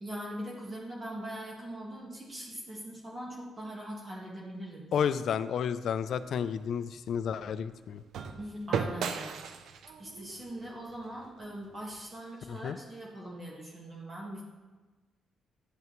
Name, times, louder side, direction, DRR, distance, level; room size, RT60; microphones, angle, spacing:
voice 1, 0.0-5.1 8.4-9.7 10.0-14.4, right 1 dB, 30° right, -4 dB, 1.6 m, -41 dB
voice 2, 4.9-8.0 12.5-12.8, left 8 dB, 65° left, 13 dB, 0.3 m, -31 dB
sound 1, 5.9-12.1, right 6 dB, 75° right, 0.5 m, -39 dB
10.5 x 5.7 x 3.1 m, 1.2 s
cardioid pair, 110°, 0 cm